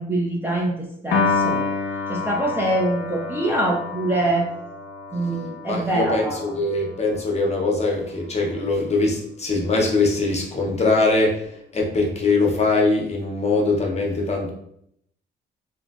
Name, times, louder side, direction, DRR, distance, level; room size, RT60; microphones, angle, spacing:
voice 1, 0.0-1.6 2.1-4.5 5.1-6.5, right 1 dB, 10° right, -2 dB, 0.5 m, -24 dB
Piano, 1.1-7.5, left 4 dB, 70° left, 0.6 m, -28 dB
voice 2, 5.7-14.5, left 3 dB, 35° left, 0 dB, 0.7 m, -22 dB
3.0 x 2.6 x 2.4 m, 0.73 s
cardioid pair, 90°, 20 cm